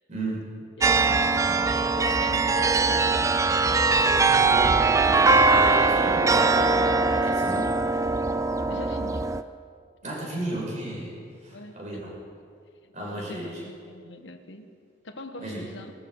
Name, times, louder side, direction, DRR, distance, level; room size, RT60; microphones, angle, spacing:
voice 1, 0.1-0.7 4.5-7.7 10.0-11.1 11.4-12.1 12.9-13.6 15.4-15.6, right 1 dB, 40° right, -4 dB, 5.4 m, -34 dB
voice 2, 0.8-1.6 2.0-3.1 8.7-9.3 10.0-10.4 11.5-12.0 12.3-12.4 12.8-14.7 15.0-15.9, left 1 dB, 70° left, 6 dB, 1.3 m, -42 dB
sound 1, 0.8-9.4, right 3 dB, 15° right, 0.4 m, -21 dB
21.5 x 13.5 x 4.9 m, 2.3 s
head